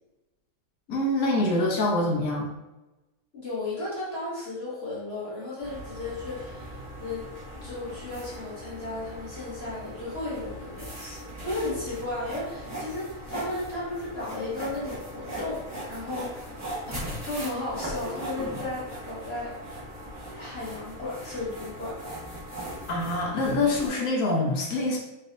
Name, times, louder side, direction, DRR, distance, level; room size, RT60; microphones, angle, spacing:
voice 1, 0.9-2.5 22.9-25.0, left 2 dB, 60° left, -2 dB, 1.3 m, -25 dB
voice 2, 3.3-7.3 7.6-15.6 15.9-16.6 16.9-19.5 20.4-22.0, left 2 dB, 35° left, -8 dB, 1.5 m, -34 dB
sound 1, 5.6-23.9, equal, 10° right, 1.0 m, -39 dB
4.1 x 3.9 x 2.6 m, 1.0 s
omnidirectional pair, 2.0 m